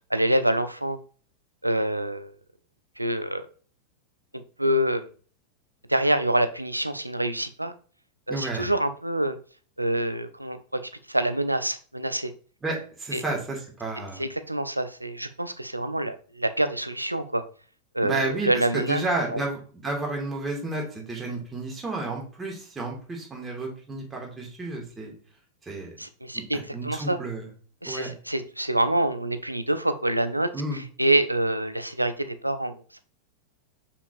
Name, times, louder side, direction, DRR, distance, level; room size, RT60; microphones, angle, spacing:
voice 1, 0.1-1.0 1.6-2.3 3.0-3.5 4.6-5.1 5.9-7.7 8.3-9.4 9.8-10.8 11.1-12.3 13.1-13.2 14.2-17.4 17.9-19.0 19.3-19.4 26.0-27.2 27.8-33.0, right 1 dB, 85° right, 11 dB, 0.5 m, -26 dB
voice 2, 8.3-8.7 12.6-14.2 18.0-25.1 25.6-25.9 26.5-27.5 27.8-28.1 30.5-30.8, right 2 dB, 15° right, -1 dB, 2.2 m, -31 dB
6.4 x 5.8 x 2.6 m, 0.41 s
figure-of-eight pair, 90°, 0 cm